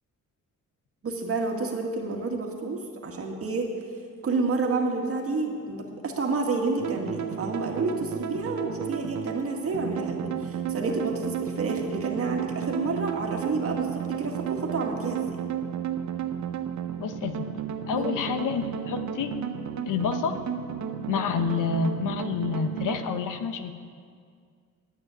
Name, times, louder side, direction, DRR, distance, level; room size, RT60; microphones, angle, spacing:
voice 1, 1.0-3.7 4.2-15.4 18.0-18.2, right 3 dB, 45° right, 1 dB, 1.8 m, -29 dB
sound 1, 6.8-23.0, right 9 dB, 65° right, 0.8 m, -33 dB
voice 2, 17.0-17.5 17.9-19.3 19.9-20.4 21.1-23.7, left 6 dB, 80° left, 8 dB, 1.0 m, -28 dB
10.0 x 8.5 x 9.7 m, 2.1 s
cardioid pair, 135°, 31 cm